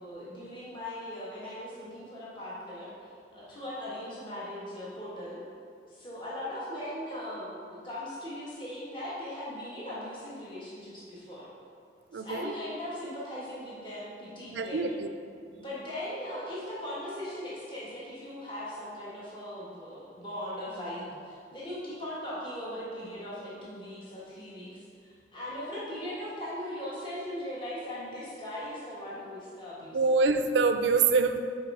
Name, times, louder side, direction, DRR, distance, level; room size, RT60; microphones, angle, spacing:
voice 1, 0.0-2.9 3.3-5.4 5.9-11.5 12.1-14.9 15.5-30.1, left 1 dB, 30° left, -8 dB, 1.4 m, -39 dB
voice 2, 12.1-12.5 14.5-15.1 15.5-15.6 29.9-31.4, right 4 dB, 80° right, 8 dB, 0.4 m, -25 dB
5.5 x 4.4 x 5.3 m, 2.3 s
head